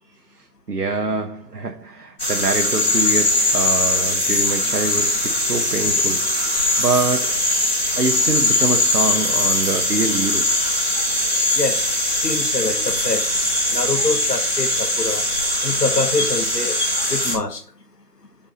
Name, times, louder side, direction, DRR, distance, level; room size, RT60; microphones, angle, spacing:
voice 1, 0.3-7.4 8.0-10.5, right 3 dB, 80° right, 0.9 m, -25 dB
sound 1, 2.2-17.4, left 2 dB, 40° left, 2.4 m, -21 dB
voice 2, 11.6-11.9 12.2-13.3 13.7-15.2 15.6-16.8 17.1-17.6, left 3 dB, 90° left, 1.2 m, -24 dB
7.2 x 5.3 x 4.0 m
figure-of-eight pair, 170°, 46 cm